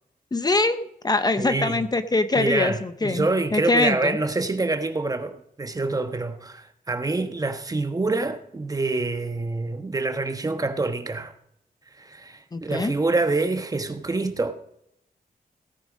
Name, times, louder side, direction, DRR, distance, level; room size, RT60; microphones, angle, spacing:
voice 1, 0.3-4.2 12.5-12.9, left 2 dB, 25° left, 0.8 m, -23 dB
voice 2, 1.4-1.8 2.3-11.3 12.0-14.5, right 3 dB, 25° right, 1.2 m, -26 dB
17.5 x 10.0 x 5.2 m
wide cardioid pair, 140°, 15 cm